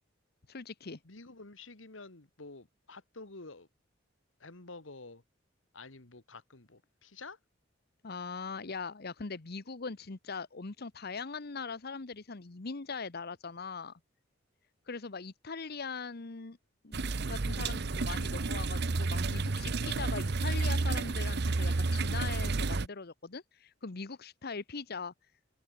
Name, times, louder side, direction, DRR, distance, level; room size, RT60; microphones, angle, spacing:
voice 1, 0.5-1.0 8.0-14.0 14.9-16.6 16.8-25.1, left 4 dB, 55° left, 1.0 m, -41 dB
voice 2, 1.0-3.7 4.4-5.2 5.7-7.4, left 3 dB, 85° left, 2.2 m, -49 dB
sound 1, 16.9-22.9, right 3 dB, 60° right, 0.9 m, -31 dB
head